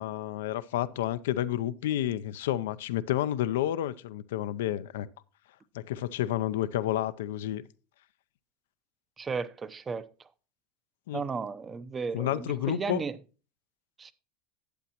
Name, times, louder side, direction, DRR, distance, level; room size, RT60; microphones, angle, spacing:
voice 1, 0.0-5.1 5.7-7.7 11.1-11.2 12.1-13.0, left 12 dB, 85° left, 0.5 m, -30 dB
voice 2, 9.2-10.3 11.1-13.2 14.0-14.1, right 5 dB, 25° right, 0.6 m, -34 dB
11.5 x 8.4 x 2.9 m
supercardioid pair, 105°, 0 cm